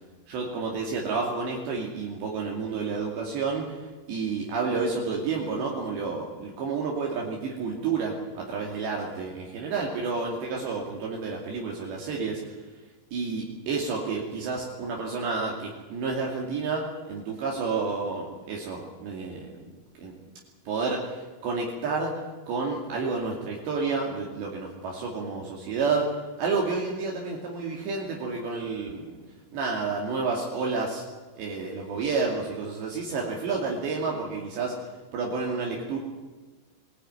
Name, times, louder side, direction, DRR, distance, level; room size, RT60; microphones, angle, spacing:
voice 1, 0.3-3.8 4.1-12.4 13.1-19.5 20.0-20.1 20.7-22.2 22.5-29.1 29.5-31.0 31.4-34.8 35.1-36.0, right 4 dB, 65° right, -1 dB, 4.6 m, -30 dB
23.0 x 16.5 x 9.6 m, 1.3 s
omnidirectional pair, 5.5 m